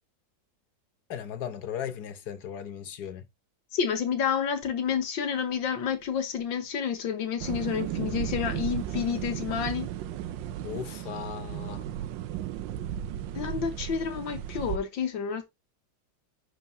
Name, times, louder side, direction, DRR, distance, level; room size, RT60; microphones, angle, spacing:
voice 1, 1.1-3.2 10.6-11.8, left 8 dB, 60° left, 1.6 m, -37 dB
voice 2, 3.7-9.9 13.4-15.4, left 7 dB, 85° left, 1.9 m, -29 dB
sound 1, 7.4-14.8, right 11 dB, 85° right, 1.3 m, -35 dB
11.0 x 4.6 x 2.7 m
omnidirectional pair, 2.0 m